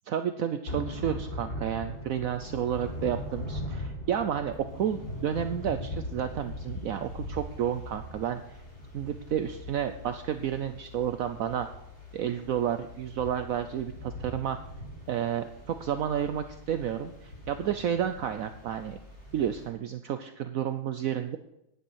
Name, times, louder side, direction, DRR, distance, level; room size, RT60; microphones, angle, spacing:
voice 1, 0.1-8.4 8.9-11.7 12.1-14.6 15.1-19.0 19.3-21.4, right 9 dB, 70° right, 9 dB, 0.8 m, -31 dB
Thunder / Rain, 0.6-19.7, left 1 dB, 55° left, 6.8 m, -41 dB
10.5 x 9.8 x 6.3 m, 0.85 s
omnidirectional pair, 2.1 m